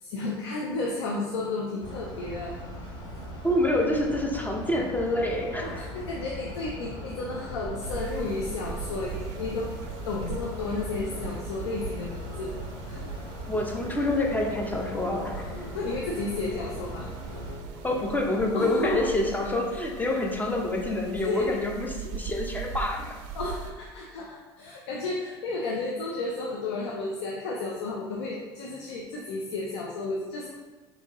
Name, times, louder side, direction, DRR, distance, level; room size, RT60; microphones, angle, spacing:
voice 1, 0.0-2.5 2.8-2.9 5.6-9.7 10.1-12.5 12.9-13.1 15.3-17.1 18.5-19.1 21.2-21.5 23.3-30.5, left 3 dB, 85° left, -2 dB, 0.5 m, -32 dB
sound 1, 1.8-17.6, left 1 dB, 40° left, 1.3 m, -40 dB
voice 2, 3.4-5.9 13.5-15.7 17.8-23.2, left 1 dB, 10° left, 1 dB, 0.7 m, -27 dB
sound 2, 6.9-19.5, left 2 dB, 55° left, 1.1 m, -47 dB
sound 3, 7.8-23.7, right 6 dB, 65° right, 0.4 m, -40 dB
4.4 x 2.7 x 2.9 m, 1.3 s
hypercardioid pair, 80°, 14 cm